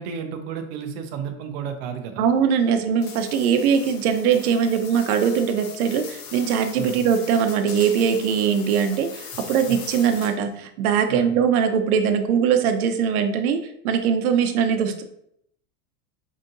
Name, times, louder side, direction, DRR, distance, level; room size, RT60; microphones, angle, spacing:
voice 1, 0.0-2.3 6.8-7.0 9.7-9.8 11.1-11.3, right 7 dB, 45° right, 6 dB, 0.6 m, -32 dB
voice 2, 2.2-13.6 13.8-15.0, right 7 dB, 80° right, 6 dB, 0.7 m, -21 dB
sound 1, 3.0-10.6, left 7 dB, 50° left, 0.6 m, -40 dB
5.0 x 2.7 x 2.5 m, 0.74 s
supercardioid pair, 170°, 43 cm